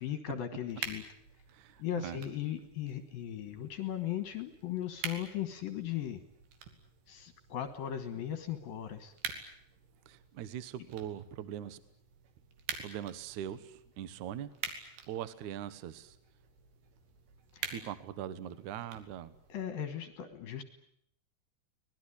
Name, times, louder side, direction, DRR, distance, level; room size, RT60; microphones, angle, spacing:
voice 1, 0.0-1.0 1.8-6.2 7.1-9.1 17.5-17.7 19.5-20.6, left 10 dB, 65° left, 10 dB, 2.6 m, -37 dB
sound 1, 0.7-19.6, right 6 dB, 60° right, 4.2 m, -47 dB
voice 2, 1.5-2.2 10.0-11.8 12.8-14.5 15.1-16.2 17.7-19.3, right 10 dB, 85° right, 14 dB, 1.7 m, -41 dB
24.0 x 19.5 x 10.0 m, 0.71 s
omnidirectional pair, 5.4 m